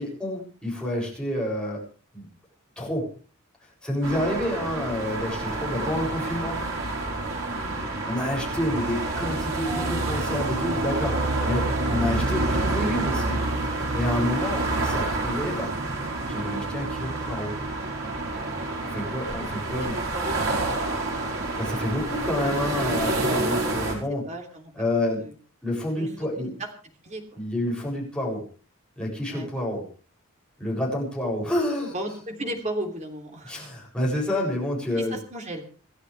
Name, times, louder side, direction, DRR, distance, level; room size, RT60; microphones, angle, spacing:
voice 1, 0.0-1.8 2.1-2.3 2.8-3.1 3.8-6.6 8.0-13.5 13.9-15.7 16.3-17.5 18.9-20.0 21.5-24.3 24.7-25.3 25.6-26.5 27.4-28.4 29.0-29.9 30.6-31.9 33.5-35.2, left 1 dB, 5° left, -3 dB, 7.4 m, -29 dB
sound 1, 4.0-23.9, right 2 dB, 80° right, 5.0 m, -28 dB
voice 2, 7.6-7.9 9.6-9.9 10.4-10.5 18.8-19.2 19.8-20.4 24.2-24.7 25.2-25.3 25.9-26.5 27.0-27.4 29.3-29.5 31.9-33.6 35.0-35.6, right 1 dB, 35° right, 3 dB, 3.2 m, -36 dB
27.5 x 11.5 x 3.5 m, 0.39 s
head